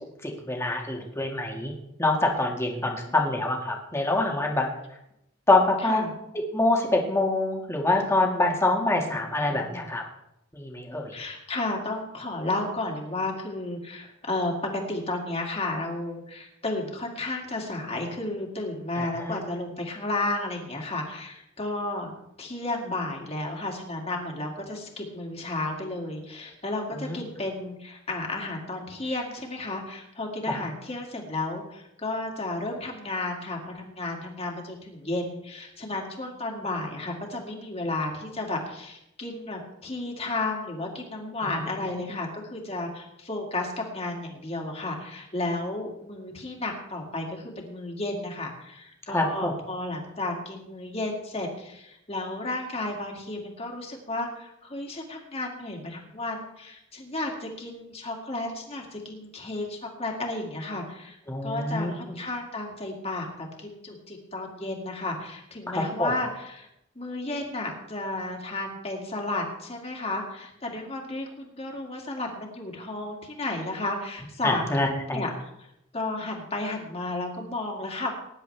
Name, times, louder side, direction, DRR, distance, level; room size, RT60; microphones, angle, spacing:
voice 1, 0.2-1.7 2.0-4.7 5.5-6.1 6.5-10.0 10.5-11.1 19.0-19.4 26.9-27.2 30.5-30.6 41.8-41.9 49.1-49.5 61.3-61.9 65.8-66.1 74.4-75.3, left 2 dB, 15° left, 0 dB, 1.9 m, -25 dB
voice 2, 2.8-3.2 5.8-6.1 9.0-9.9 11.1-22.1 22.4-61.2 61.4-63.3 63.6-66.7 67.0-75.3 75.9-78.1, left 2 dB, 30° left, 1 dB, 2.3 m, -33 dB
20.0 x 10.5 x 3.4 m, 0.83 s
head